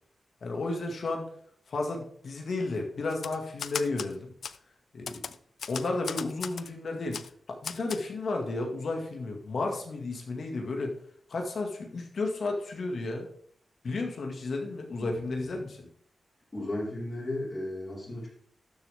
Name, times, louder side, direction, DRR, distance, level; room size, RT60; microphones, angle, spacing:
voice 1, 0.4-1.3 1.7-4.3 4.9-5.3 5.7-7.2 7.5-11.0 11.3-13.3 13.8-15.9, left 3 dB, 65° left, 2 dB, 2.0 m, -33 dB
Typewriter, 3.1-4.1 4.4-4.6 5.1-6.7 7.1-7.3 7.6-8.0, left 6 dB, 85° left, 0.4 m, -37 dB
voice 2, 15.0-15.7 16.5-18.3, left 1 dB, 35° left, -5 dB, 4.5 m, -36 dB
12.5 x 7.0 x 3.6 m, 0.62 s
wide cardioid pair, 130°, 0 cm